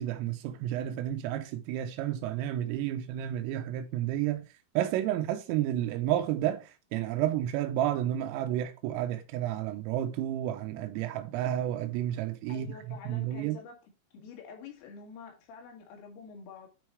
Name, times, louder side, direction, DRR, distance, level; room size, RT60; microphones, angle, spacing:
voice 1, 0.0-4.4 4.8-13.6, right 12 dB, 90° right, 3.4 m, -31 dB
voice 2, 12.5-13.8 14.1-16.7, left 5 dB, 75° left, 4.8 m, -47 dB
9.5 x 4.8 x 4.6 m
omnidirectional pair, 5.9 m